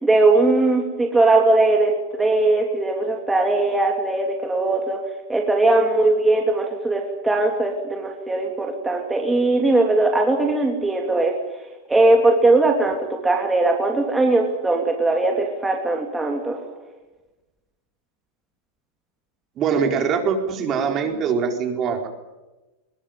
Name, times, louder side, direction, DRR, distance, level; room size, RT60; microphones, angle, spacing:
voice 1, 0.0-5.0 5.3-11.3 11.9-16.6, right 2 dB, 10° right, 1 dB, 3.0 m, -19 dB
voice 2, 19.6-22.1, right 6 dB, 35° right, 4 dB, 4.5 m, -23 dB
22.0 x 19.5 x 9.3 m, 1.1 s
supercardioid pair, 140°, 0 cm